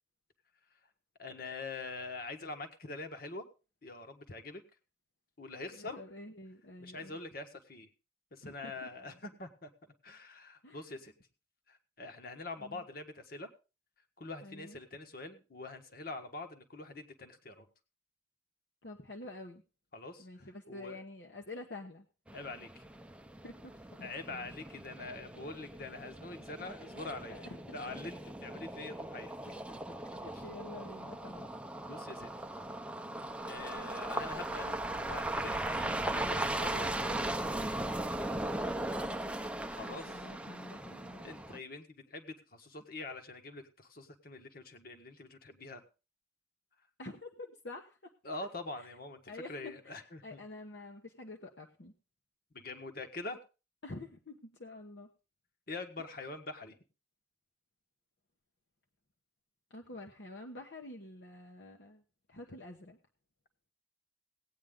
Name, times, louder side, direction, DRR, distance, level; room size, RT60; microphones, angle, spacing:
voice 1, 1.2-3.5 3.8-4.6 5.4-6.0 6.8-7.9 8.3-9.7 10.0-11.1 11.7-13.5 14.2-17.7 19.9-21.0 22.3-22.8 24.0-27.4 27.7-29.3 29.7-30.2 31.9-32.3 33.4-37.8 39.7-40.3 41.2-45.8 48.2-50.4 52.5-53.4 55.7-56.8, left 3 dB, 55° left, 6 dB, 1.6 m, -44 dB
voice 2, 5.7-7.2 8.4-9.2 10.6-11.0 12.6-12.8 14.4-14.8 18.8-19.6 20.2-22.1 23.4-24.5 27.3-27.8 30.2-31.5 31.9-32.0 38.5-39.3 39.8-41.2 47.0-48.1 49.3-49.9 50.2-51.9 53.8-55.1 59.7-62.0 62.3-63.0, left 2 dB, 70° left, 2 dB, 1.2 m, -48 dB
sound 1, 22.3-41.6, right 1 dB, 5° right, 0.6 m, -38 dB
17.5 x 9.1 x 3.8 m, 0.32 s
head